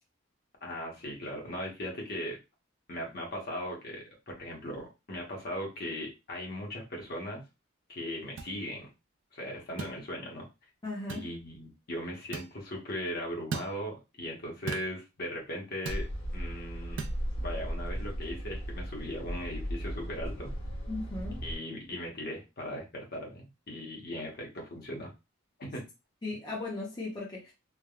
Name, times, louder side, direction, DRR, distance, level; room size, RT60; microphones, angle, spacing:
voice 1, 0.6-2.4 2.9-4.0 4.4-7.4 7.9-8.9 9.3-10.5 11.1-16.1 16.3-17.0 17.4-20.5 21.4-25.1 25.6-25.8, equal, 50° left, 0.9 m, -38 dB
sound 1, 8.4-8.5 9.8-10.0 11.1-11.3 12.3-12.5 13.5-13.7 14.7-14.9 15.9-16.1 17.0-17.2, right 4 dB, 65° right, 0.4 m, -37 dB
voice 2, 10.8-11.3 20.9-21.4 26.2-27.5, left 2 dB, 20° left, 0.7 m, -37 dB
sound 2, 15.9-21.6, equal, 80° left, 1.2 m, -36 dB
3.3 x 2.1 x 2.3 m
head